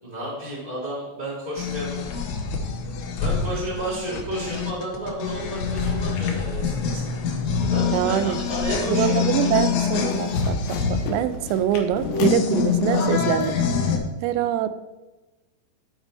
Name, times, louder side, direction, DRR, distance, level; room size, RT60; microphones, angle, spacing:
voice 1, 0.0-2.0 3.2-7.1 7.6-9.6, right 1 dB, 40° left, -6 dB, 0.6 m, -32 dB
sound 1, 1.6-14.0, left 6 dB, 70° left, 3.0 m, -25 dB
voice 2, 7.9-8.4 8.9-14.0 14.2-14.7, right 11 dB, 85° right, 13 dB, 3.2 m, -24 dB
sound 2, 8.4-9.0 9.4-9.7 9.9-13.5, left 5 dB, 90° left, 3.8 m, -38 dB
12.5 x 4.8 x 4.2 m, 1.1 s
omnidirectional pair, 5.8 m